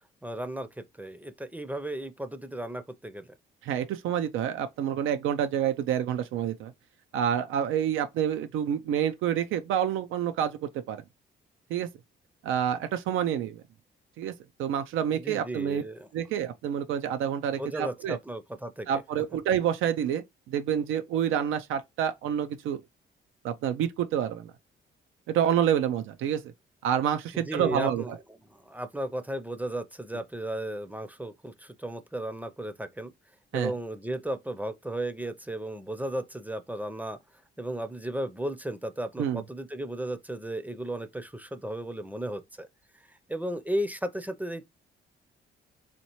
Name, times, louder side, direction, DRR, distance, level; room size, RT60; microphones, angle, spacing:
voice 1, 0.2-3.3 15.1-16.1 17.6-19.0 27.3-28.2 28.5-33.1 33.5-37.2 37.6-42.7 43.1-44.7, right 1 dB, 10° right, 0.5 m, -35 dB
voice 2, 3.6-6.7 7.1-11.0 11.7-11.9 12.4-13.6 14.2-14.3 14.6-15.8 16.1-18.2 18.9-22.8 23.4-24.5 25.3-26.5 26.8-28.2 33.5-33.7 39.2-39.4, right 9 dB, 85° right, 0.5 m, -28 dB
4.2 x 3.1 x 3.0 m
cardioid pair, 90°, 20 cm